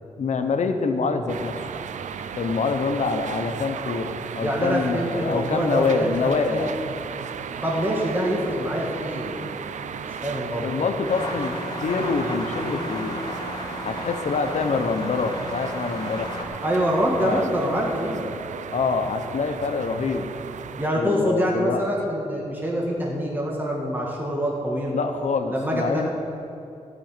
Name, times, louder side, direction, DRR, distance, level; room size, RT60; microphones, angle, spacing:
voice 1, 0.2-1.5 2.3-6.7 10.6-13.2 13.8-16.3 17.2-17.4 18.7-20.3 20.9-21.8 24.9-26.1, left 4 dB, 75° left, 6 dB, 1.0 m, -25 dB
sound 1, 1.3-20.9, right 7 dB, 85° right, 0.5 m, -35 dB
voice 2, 4.4-6.7 7.6-10.7 16.6-18.3 20.8-24.9 25.5-26.1, equal, 15° right, -3 dB, 1.9 m, -25 dB
sound 2, 11.1-16.4, left 1 dB, 40° left, 2.6 m, -34 dB
15.0 x 6.3 x 9.1 m, 2.7 s
wide cardioid pair, 105°, 12 cm